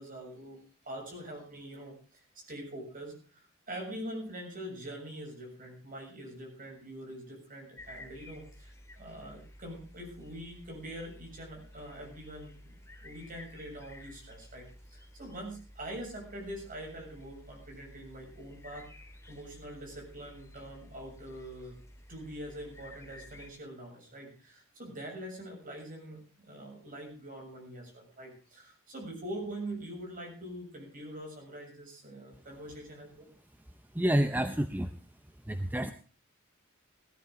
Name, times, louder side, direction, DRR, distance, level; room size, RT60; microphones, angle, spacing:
voice 1, 0.0-18.9 19.3-21.8 22.1-33.1, right 1 dB, 40° right, 1 dB, 7.1 m, -44 dB
sound 1, 7.8-23.5, left 1 dB, 15° left, 2.0 m, -53 dB
voice 2, 33.9-34.9 35.5-35.9, right 1 dB, 10° right, 9 dB, 0.7 m, -28 dB
18.0 x 13.0 x 3.8 m, 0.38 s
head